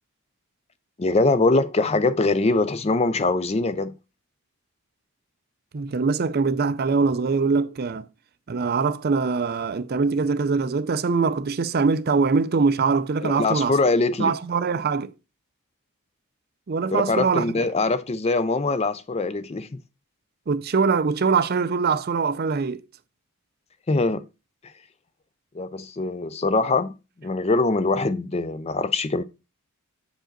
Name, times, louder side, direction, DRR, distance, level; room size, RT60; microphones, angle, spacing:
voice 1, 1.0-3.9 13.2-14.3 16.9-19.7 23.9-24.2 25.5-26.9 27.2-29.2, left 3 dB, 25° left, 0.4 m, -23 dB
voice 2, 5.7-8.1 8.5-13.8 14.2-15.1 16.7-17.6 20.5-22.8, right 4 dB, 45° right, 0.5 m, -23 dB
7.7 x 5.1 x 3.8 m
head